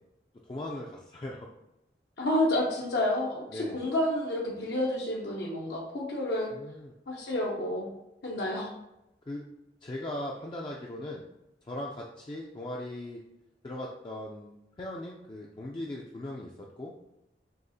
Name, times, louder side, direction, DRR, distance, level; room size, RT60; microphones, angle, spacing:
voice 1, 0.4-1.5 3.5-3.8 6.5-6.9 9.3-9.4 9.8-11.2 11.6-13.2 13.6-16.9, left 1 dB, 25° left, -2 dB, 0.3 m, -39 dB
voice 2, 2.2-6.5 7.1-7.9 8.2-8.7, left 1 dB, 70° left, -1 dB, 0.6 m, -29 dB
6.3 x 2.4 x 2.7 m, 0.90 s
head